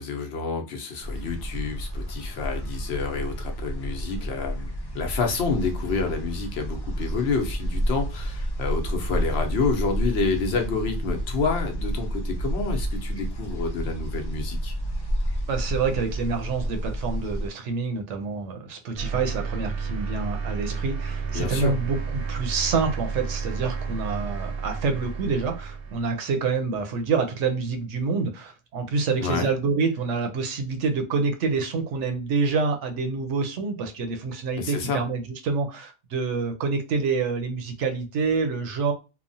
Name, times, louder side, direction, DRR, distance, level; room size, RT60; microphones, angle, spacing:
voice 1, 0.0-14.7 21.3-21.7 29.2-29.5 34.6-35.0, left 4 dB, 70° left, 4 dB, 0.9 m, -28 dB
sound 1, 1.0-17.5, equal, 40° left, 0.3 m, -30 dB
voice 2, 15.5-38.9, right 4 dB, 90° right, 6 dB, 1.0 m, -27 dB
sound 2, 19.0-26.1, right 5 dB, 60° right, 0.8 m, -31 dB
3.0 x 2.0 x 2.6 m, 0.30 s
omnidirectional pair, 1.2 m